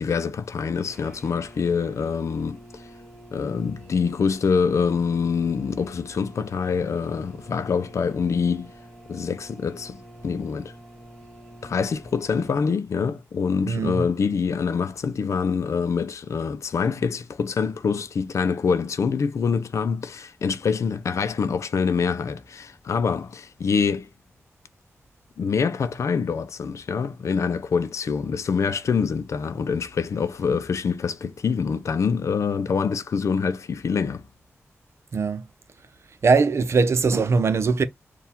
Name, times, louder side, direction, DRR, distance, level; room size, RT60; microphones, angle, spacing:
voice 1, 0.0-2.8 3.3-8.7 9.1-10.7 11.6-24.1 25.4-34.2, left 5 dB, 75° left, 0.5 m, -25 dB
sound 1, 0.8-12.6, right 1 dB, 10° left, 1.5 m, -47 dB
voice 2, 13.7-14.0 35.1-35.4 36.2-37.8, right 4 dB, 60° right, 0.6 m, -21 dB
4.5 x 2.4 x 3.6 m
wide cardioid pair, 95°, 5 cm